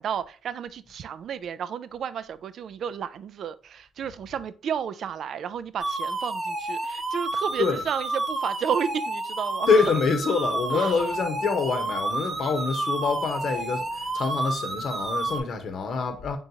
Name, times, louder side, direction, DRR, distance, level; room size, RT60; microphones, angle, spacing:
voice 1, 0.0-9.7 10.7-11.0, right 8 dB, 65° right, 0.3 m, -32 dB
sound 1, 5.8-15.4, right 2 dB, 30° right, 0.9 m, -30 dB
voice 2, 9.7-16.4, left 5 dB, 60° left, 0.8 m, -26 dB
3.9 x 3.6 x 2.8 m
cardioid pair, 90°, 0 cm